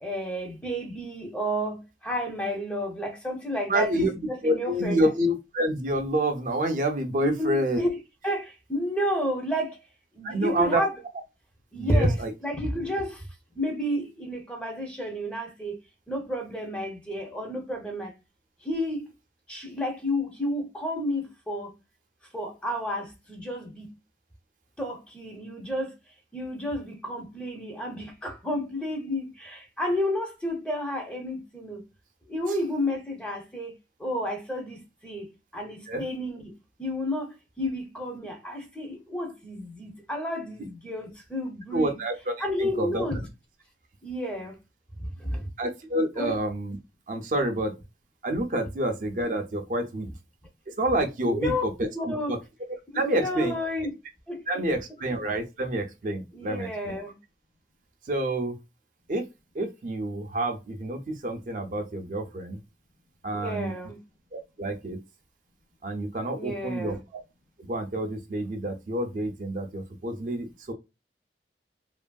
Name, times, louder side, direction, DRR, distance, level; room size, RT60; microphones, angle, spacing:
voice 1, 0.0-5.1 7.2-8.0 8.2-9.8 10.1-10.9 11.7-12.2 12.4-13.3 13.5-15.8 16.1-18.1 18.6-19.0 19.5-21.8 22.3-23.9 24.8-25.9 26.3-31.8 32.3-33.7 34.0-41.9 42.4-43.3 44.0-44.6 45.0-45.5 46.2-46.3 51.2-51.6 51.9-52.4 52.9-53.9 54.3-54.4 56.3-57.2 63.3-64.0 66.3-67.0, equal, 5° left, 0.6 m, -31 dB
voice 2, 3.7-4.1 4.4-7.8 10.2-10.8 11.7-12.3 35.9-36.0 41.7-43.0 45.6-46.8 47.1-47.7 48.2-50.1 50.7-52.4 52.9-53.5 54.5-57.0 58.0-58.6 59.1-59.3 59.5-62.6 63.2-63.7 64.3-65.0 65.8-67.0 67.6-70.7, right 1 dB, 45° right, 0.4 m, -28 dB
2.9 x 2.5 x 2.2 m
head